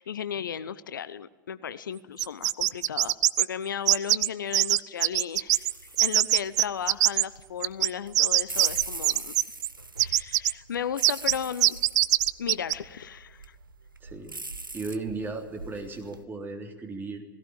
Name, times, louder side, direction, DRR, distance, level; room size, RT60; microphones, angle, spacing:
voice 1, 0.0-5.7 6.0-9.3 10.0-11.8 12.4-13.6, left 8 dB, 70° left, 15 dB, 0.8 m, -35 dB
sound 1, 2.2-3.5 3.9-4.3 4.5-5.7 6.0-7.3 7.6-9.7 10.0-10.5 11.0-11.4 11.6-12.7, right 16 dB, 55° right, 0.5 m, -22 dB
sound 2, 5.5-16.2, right 2 dB, 90° right, 1.0 m, -42 dB
voice 2, 14.0-14.3 14.7-17.2, right 3 dB, 20° right, 3 dB, 3.5 m, -36 dB
18.0 x 16.5 x 8.9 m, 1.3 s
figure-of-eight pair, 90°, 11 cm